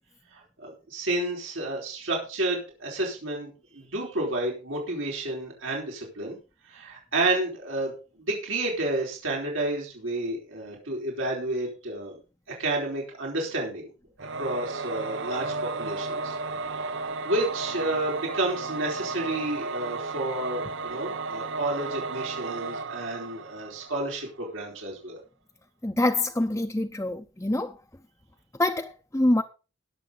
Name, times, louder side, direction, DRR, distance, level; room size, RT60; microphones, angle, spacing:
voice 1, 0.3-6.4 6.7-12.1 12.6-13.9 14.3-15.5 15.8-16.3 16.7-25.2, right 2 dB, 85° right, 4.6 m, -30 dB
Singing / Musical instrument, 14.2-24.2, right 3 dB, 65° right, 0.7 m, -34 dB
voice 2, 25.8-27.8 28.6-29.4, left 1 dB, 15° left, 0.6 m, -25 dB
20.0 x 7.1 x 3.9 m
head